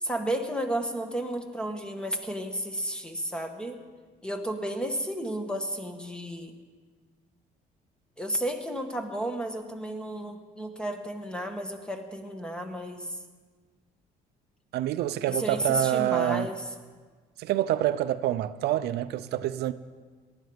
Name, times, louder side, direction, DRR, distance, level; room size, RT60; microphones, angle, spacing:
voice 1, 0.0-3.8 4.2-6.5 8.2-13.2 15.3-16.7, right 1 dB, 5° left, 1.6 m, -32 dB
voice 2, 14.7-16.5 17.4-19.7, right 13 dB, 75° right, 0.5 m, -27 dB
18.5 x 12.0 x 5.1 m
cardioid pair, 110°, 17 cm